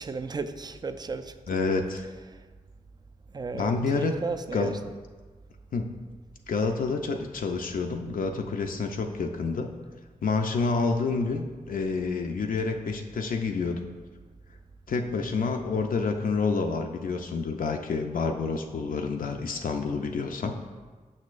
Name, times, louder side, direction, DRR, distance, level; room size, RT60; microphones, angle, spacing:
voice 1, 0.0-1.6 2.3-2.4 3.3-4.8 11.0-11.2, right 4 dB, 30° right, 10 dB, 0.4 m, -35 dB
voice 2, 1.5-2.1 3.5-4.2 4.5-4.7 5.7-5.9 6.5-9.7 10.2-13.8 14.9-20.6, left 4 dB, 70° left, 3 dB, 0.4 m, -28 dB
6.3 x 6.1 x 2.5 m, 1.4 s
cardioid pair, 55°, 15 cm